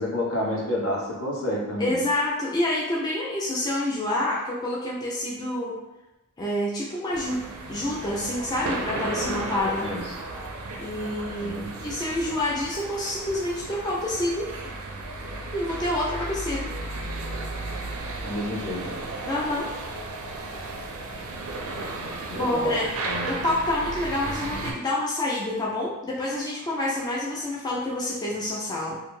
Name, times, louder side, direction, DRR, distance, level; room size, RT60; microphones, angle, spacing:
voice 1, 0.0-2.0 9.2-10.1 11.4-11.7 18.2-19.0 22.0-23.6, left 1 dB, 65° left, -3 dB, 0.7 m, -30 dB
voice 2, 1.8-5.8 6.4-9.9 10.8-14.5 15.5-16.7 19.3-19.7 22.3-22.9 23.3-29.0, left 1 dB, 20° left, -5 dB, 0.3 m, -28 dB
sound 1, 7.1-24.7, right 2 dB, 70° right, 0.4 m, -34 dB
2.5 x 2.2 x 3.0 m, 0.97 s
head